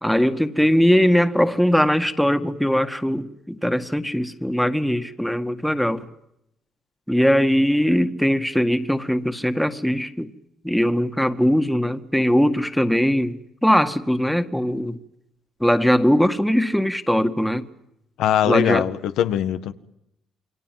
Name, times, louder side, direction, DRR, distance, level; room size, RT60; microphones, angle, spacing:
voice 1, 0.0-6.1 7.1-10.3 10.6-15.0 15.6-17.7 18.4-18.9, equal, ahead, 1.9 m, -20 dB
voice 2, 18.2-19.7, left 10 dB, 90° left, 1.6 m, -21 dB
28.5 x 23.0 x 7.7 m
cardioid pair, 90°, 0 cm